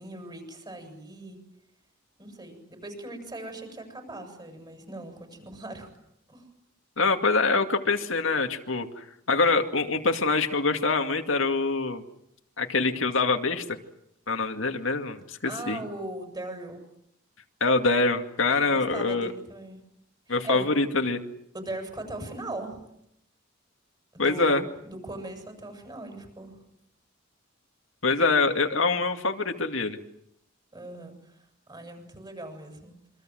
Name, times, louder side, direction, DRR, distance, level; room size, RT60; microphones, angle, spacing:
voice 1, 0.0-1.4 2.2-5.9 6.3-6.4 15.4-16.8 18.6-19.8 20.3-20.7 21.5-22.8 24.1-26.6 30.7-32.9, right 2 dB, 20° right, 6 dB, 7.6 m, -39 dB
voice 2, 7.0-12.0 12.6-13.6 14.3-15.8 17.6-19.3 20.3-21.2 24.2-24.6 28.0-30.0, left 3 dB, 75° left, 5 dB, 2.3 m, -25 dB
27.5 x 25.5 x 7.8 m, 0.77 s
head